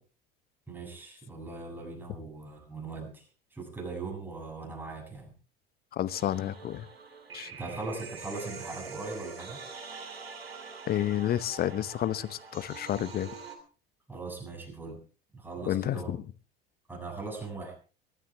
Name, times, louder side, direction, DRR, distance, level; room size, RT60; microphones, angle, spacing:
voice 1, 0.7-3.3 3.5-5.3 7.5-9.6 14.1-15.0 15.3-16.1 16.9-17.8, right 3 dB, 5° right, 0 dB, 7.1 m, -40 dB
voice 2, 5.9-6.9 7.3-7.5 10.9-13.3 15.7-16.2, left 12 dB, 30° left, 16 dB, 0.9 m, -30 dB
sound 1, 6.1-13.6, right 5 dB, 75° right, 2.8 m, -45 dB
23.0 x 12.5 x 3.4 m, 0.37 s
figure-of-eight pair, 70°, 30 cm